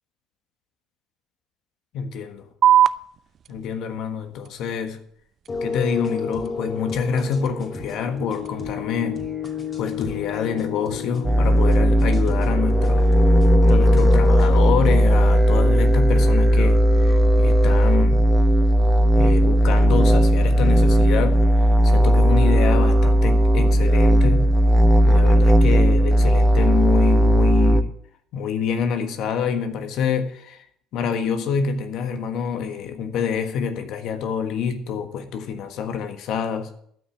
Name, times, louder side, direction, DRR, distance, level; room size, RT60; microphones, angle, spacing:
voice 1, 1.9-2.5 3.5-5.0 5.6-9.2 9.8-13.1 13.7-18.2 19.2-24.5 24.8-27.9 28.3-30.6 30.9-36.7, left 6 dB, 65° left, 1.5 m, -26 dB
sound 1, 2.6-9.6, right 10 dB, 50° right, 0.4 m, -27 dB
sound 2, 5.5-14.5, left 5 dB, 35° left, 2.9 m, -30 dB
sound 3, 11.2-27.8, equal, 5° right, 1.0 m, -16 dB
12.5 x 6.0 x 9.2 m
supercardioid pair, 90°, 0 cm